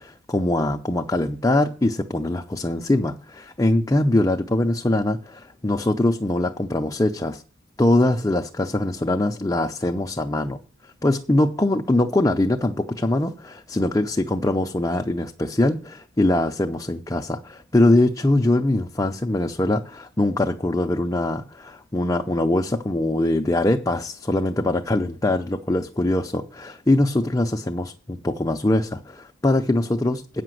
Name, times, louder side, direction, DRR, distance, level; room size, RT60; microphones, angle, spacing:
voice 1, 0.0-7.4 7.8-10.6 11.0-30.4, left 1 dB, 15° left, 0.5 m, -22 dB
8.5 x 5.9 x 7.6 m
head